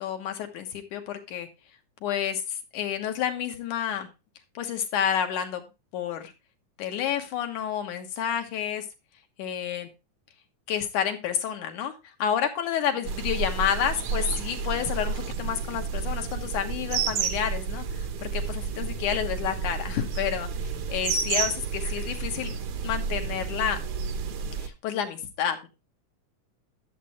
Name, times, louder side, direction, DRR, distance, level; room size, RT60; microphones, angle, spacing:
voice 1, 0.0-1.5 2.0-4.1 4.5-5.6 5.9-6.3 6.8-8.9 9.4-9.9 10.7-22.5 22.8-23.8 24.6-25.7, left 9 dB, 80° left, 6 dB, 2.7 m, -30 dB
sound 1, 13.0-24.7, right 5 dB, 65° right, 1.4 m, -31 dB
12.0 x 7.5 x 3.1 m, 0.27 s
omnidirectional pair, 3.6 m